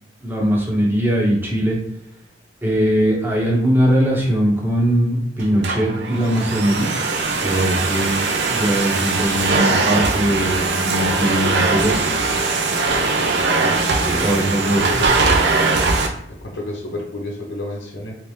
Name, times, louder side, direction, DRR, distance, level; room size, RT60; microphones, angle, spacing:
voice 1, 0.2-1.8 2.6-6.9 7.4-12.0 14.1-15.0, equal, 10° right, -2 dB, 0.8 m, -20 dB
Domestic sounds home sounds, 5.4-16.1, right 3 dB, 70° right, 0.5 m, -20 dB
voice 2, 13.5-14.4 14.9-15.4 16.4-18.1, left 1 dB, 80° left, -2 dB, 0.8 m, -31 dB
3.2 x 2.8 x 3.2 m, 0.74 s
head